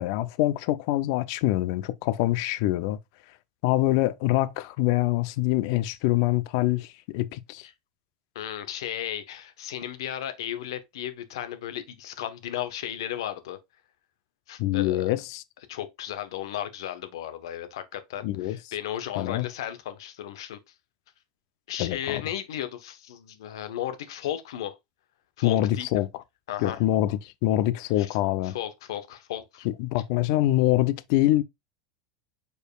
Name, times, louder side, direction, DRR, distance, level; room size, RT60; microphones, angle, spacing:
voice 1, 0.0-3.0 3.6-7.7 14.6-15.4 18.2-18.6 19.2-19.5 21.8-22.2 25.4-26.1 26.6-28.6 29.6-31.4, left 15 dB, 65° left, 0.6 m, -25 dB
voice 2, 8.3-13.6 14.5-15.1 15.7-20.6 21.7-24.7 25.4-25.9 26.5-26.8 28.0-28.1 28.4-29.7, left 11 dB, 85° left, 1.1 m, -35 dB
5.0 x 4.5 x 2.3 m
supercardioid pair, 130°, 2 cm